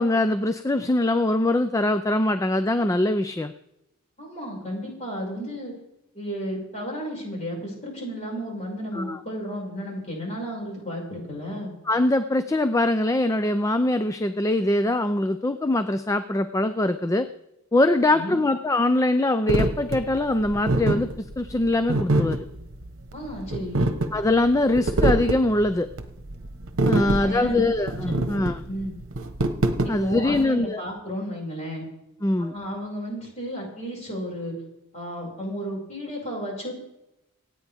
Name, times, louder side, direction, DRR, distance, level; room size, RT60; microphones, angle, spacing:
voice 1, 0.0-3.5 8.9-9.2 11.9-17.3 17.7-22.4 24.1-25.9 26.8-28.6 29.9-30.8 32.2-32.5, left 2 dB, 15° left, 11 dB, 0.4 m, -23 dB
voice 2, 4.2-5.7 6.1-11.7 18.1-18.4 23.1-23.9 26.9-27.6 28.1-28.3 28.7-28.9 29.8-31.8 32.4-34.6 34.9-36.7, equal, 30° left, -2 dB, 5.6 m, -33 dB
sound 1, 19.5-30.4, right 2 dB, 60° right, 1.1 m, -25 dB
26.0 x 9.2 x 3.5 m, 0.88 s
head